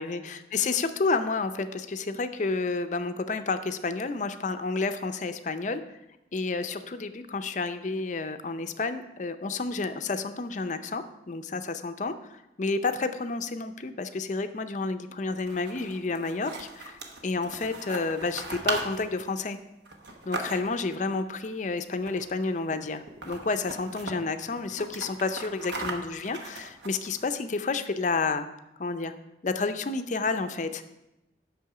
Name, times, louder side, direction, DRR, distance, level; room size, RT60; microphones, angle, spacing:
voice 1, 0.0-5.8 6.3-19.6 20.3-28.5 28.8-29.1 29.4-30.8, left 3 dB, 45° left, 9 dB, 0.5 m, -30 dB
sound 1, 15.3-20.9 22.0-22.4 22.7-22.8 23.1-24.1 24.6-27.2, right 3 dB, 70° right, 1.0 m, -38 dB
8.5 x 6.2 x 4.8 m, 0.94 s
head